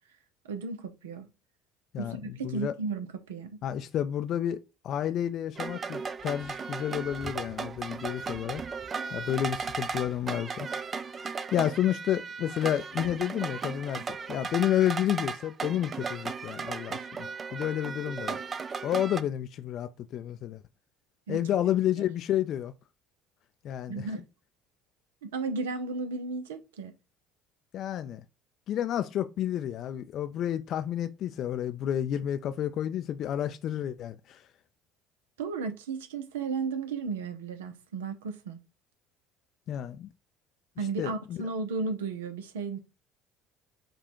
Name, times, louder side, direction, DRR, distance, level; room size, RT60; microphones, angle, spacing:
voice 1, 0.4-1.3 2.0-3.6 21.3-21.4 23.9-24.2 25.2-26.9 35.4-38.6 40.8-42.8, right 4 dB, 80° right, 0.6 m, -34 dB
voice 2, 1.9-2.7 3.6-4.6 4.8-8.6 9.1-14.0 14.3-18.4 18.8-20.6 21.3-22.7 23.6-24.1 27.7-28.2 28.7-34.4 39.7-40.1 41.0-41.4, left 11 dB, 55° left, 0.3 m, -30 dB
sound 1, 5.6-19.2, right 5 dB, 35° right, 0.4 m, -36 dB
5.0 x 2.4 x 4.4 m
hypercardioid pair, 65°, 0 cm